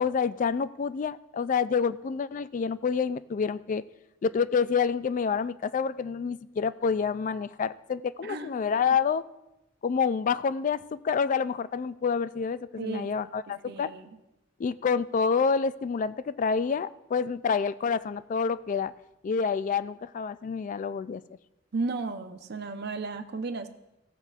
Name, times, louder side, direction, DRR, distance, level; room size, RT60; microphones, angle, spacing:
voice 1, 0.0-3.8 4.2-9.2 9.8-13.9 14.6-18.9 19.2-21.2, left 6 dB, 40° left, 15 dB, 0.3 m, -28 dB
voice 2, 12.8-13.1 13.7-14.2 21.7-23.7, right 3 dB, 60° right, 8 dB, 0.7 m, -34 dB
15.5 x 7.9 x 2.4 m, 0.93 s
head